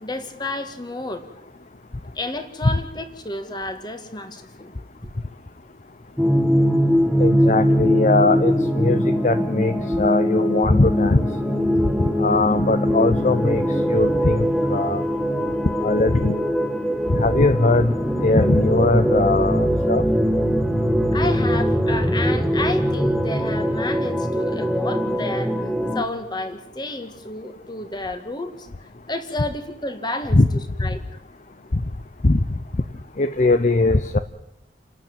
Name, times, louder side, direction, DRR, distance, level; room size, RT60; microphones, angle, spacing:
voice 1, 0.0-1.3 2.2-4.7 21.1-25.7 25.9-28.7 29.1-31.0, left 2 dB, 25° left, 8 dB, 2.1 m, -31 dB
sound 1, 6.2-26.0, equal, ahead, 1.4 m, -21 dB
voice 2, 7.2-11.3 12.2-13.6 13.9-15.0 15.8-16.4 17.1-20.0 30.4-30.5 31.7-31.8 32.2-32.4 33.2-34.2, left 2 dB, 40° left, 11 dB, 0.7 m, -20 dB
29.5 x 12.5 x 9.0 m, 0.85 s
head